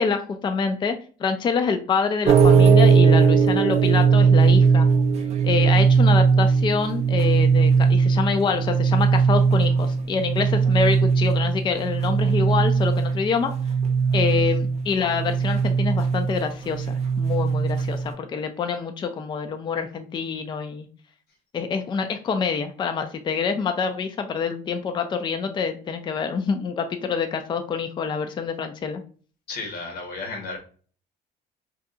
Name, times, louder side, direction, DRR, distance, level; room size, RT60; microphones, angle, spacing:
voice 1, 0.0-4.9 5.4-13.5 14.1-20.9 21.5-29.0, left 5 dB, 30° left, 7 dB, 0.4 m, -26 dB
sound 1, 2.3-18.1, right 5 dB, 40° right, 0.5 m, -19 dB
voice 2, 29.5-30.6, left 3 dB, 70° left, 3 dB, 1.1 m, -33 dB
2.7 x 2.2 x 3.6 m, 0.40 s
cardioid pair, 110°, 17 cm